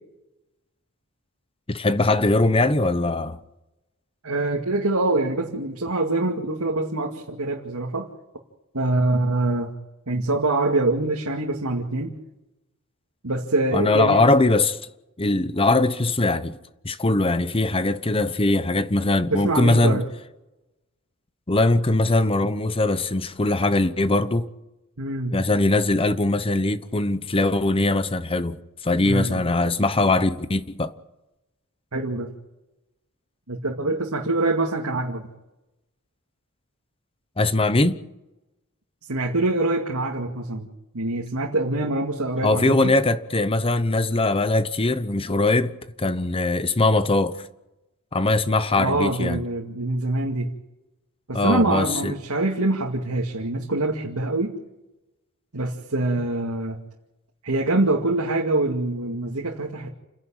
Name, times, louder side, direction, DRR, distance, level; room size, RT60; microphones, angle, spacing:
voice 1, 1.7-3.4 13.7-14.8 15.2-16.6 16.8-20.0 21.5-24.5 25.3-30.9 37.4-38.0 42.4-47.4 48.1-49.4 51.3-52.1, left 2 dB, 25° left, 0.9 m, -21 dB
voice 2, 4.2-8.1 8.7-9.7 10.1-12.1 13.2-14.2 19.3-20.0 25.0-25.4 29.0-29.4 31.9-32.3 33.5-35.3 39.1-40.7 40.9-42.9 48.8-50.5 51.3-54.5 55.5-56.8 57.4-59.9, right 2 dB, 85° right, 2.3 m, -24 dB
29.0 x 11.0 x 8.9 m
head